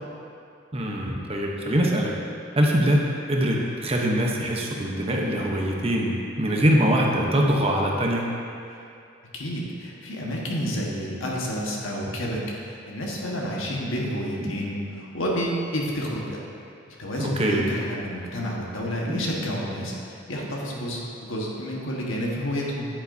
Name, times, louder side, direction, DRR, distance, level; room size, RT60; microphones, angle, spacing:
voice 1, 0.7-2.1 2.6-6.1 6.4-8.2 14.4-14.5 17.2-17.7 19.1-19.2, equal, 30° right, -1 dB, 0.9 m, -23 dB
voice 2, 9.3-16.4 16.9-22.9, equal, 85° left, -3 dB, 1.4 m, -30 dB
9.7 x 8.7 x 2.7 m, 2.5 s
head